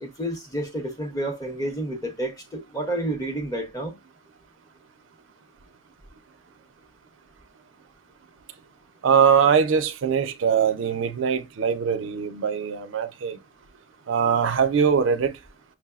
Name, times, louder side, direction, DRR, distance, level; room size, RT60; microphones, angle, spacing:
voice 1, 0.0-3.9, right 1 dB, 20° left, 0.7 m, -30 dB
voice 2, 9.0-13.4 14.1-15.3, right 7 dB, 75° right, 0.4 m, -22 dB
5.9 x 2.0 x 2.3 m
head